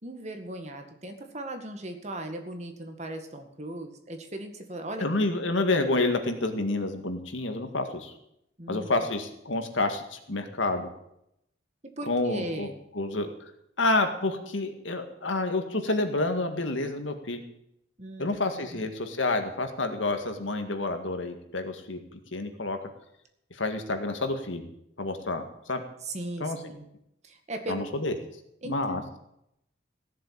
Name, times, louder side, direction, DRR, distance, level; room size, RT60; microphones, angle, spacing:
voice 1, 0.0-5.1 8.6-8.9 12.0-12.8 18.0-18.8 26.0-26.9 27.2-27.8 28.6-29.1, right 1 dB, 35° right, 5 dB, 2.0 m, -38 dB
voice 2, 5.0-8.1 8.7-10.9 12.1-12.7 12.9-13.3 13.8-17.4 18.2-22.0 22.3-22.8 23.6-24.7 25.0-25.8 26.4-26.6 27.7-28.1 28.6-29.0, left 2 dB, 85° left, 6 dB, 2.0 m, -28 dB
16.0 x 7.6 x 8.8 m, 0.78 s
head